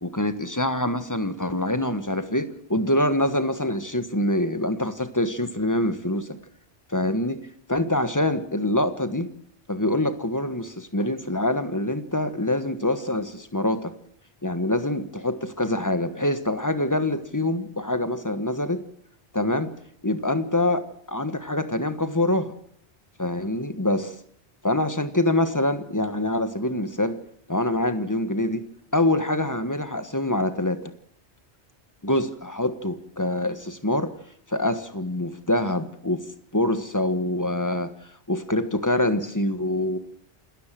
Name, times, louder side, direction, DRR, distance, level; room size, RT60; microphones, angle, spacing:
voice 1, 0.0-6.4 6.9-7.4 7.7-9.3 9.7-13.9 14.4-18.8 19.3-19.7 20.0-20.8 21.1-22.5 23.2-24.1 24.6-27.2 27.5-28.6 28.9-30.9 32.0-34.1 34.5-36.2 36.5-37.9 38.3-40.0, left 1 dB, 15° left, 10 dB, 1.4 m, -25 dB
27.5 x 13.5 x 7.6 m, 0.67 s
omnidirectional pair, 1.2 m